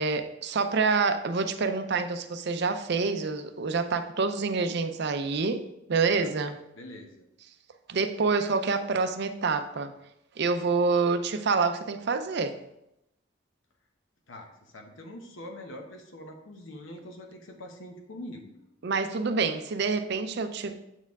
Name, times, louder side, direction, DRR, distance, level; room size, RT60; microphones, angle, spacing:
voice 1, 0.0-5.6 5.9-6.6 7.9-9.9 10.4-12.5 18.8-20.9, right 4 dB, 55° right, 9 dB, 0.5 m, -27 dB
voice 2, 6.2-7.3 14.3-18.5, left 1 dB, 70° left, 3 dB, 0.9 m, -44 dB
8.1 x 4.4 x 3.5 m, 0.85 s
head